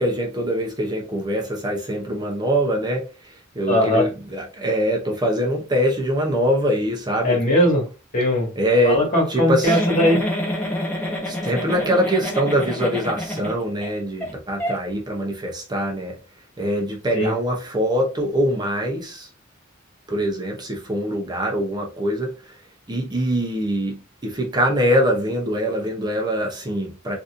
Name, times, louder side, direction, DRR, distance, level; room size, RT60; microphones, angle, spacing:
voice 1, 0.0-7.4 8.6-9.0 9.3-9.8 11.3-16.2 16.6-19.3 20.1-22.6 22.9-27.2, equal, 20° right, 0.6 m, -23 dB
voice 2, 3.7-4.1 7.2-7.9 8.1-8.5 8.8-10.2 17.1-17.3, left 1 dB, 40° left, 1.7 m, -19 dB
Giggle, 9.6-13.9 14.2-14.3 14.6-14.8, left 1 dB, 10° left, 1.0 m, -27 dB
4.0 x 2.6 x 2.5 m
head